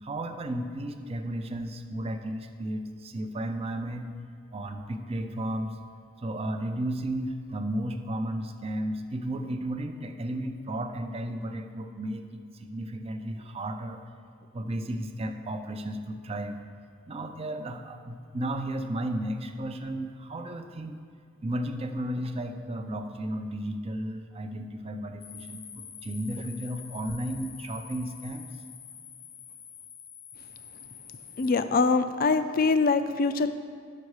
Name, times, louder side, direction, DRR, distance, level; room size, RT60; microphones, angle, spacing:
voice 1, 0.0-4.1 4.5-5.7 6.2-14.0 14.5-16.6 17.1-21.0 21.4-28.5, right 1 dB, 30° right, 5 dB, 0.5 m, -34 dB
sound 1, 25.2-31.5, left 8 dB, 80° left, 0.8 m, -46 dB
voice 2, 31.4-33.5, left 4 dB, 45° left, 10 dB, 0.4 m, -23 dB
10.5 x 6.3 x 4.8 m, 2.2 s
head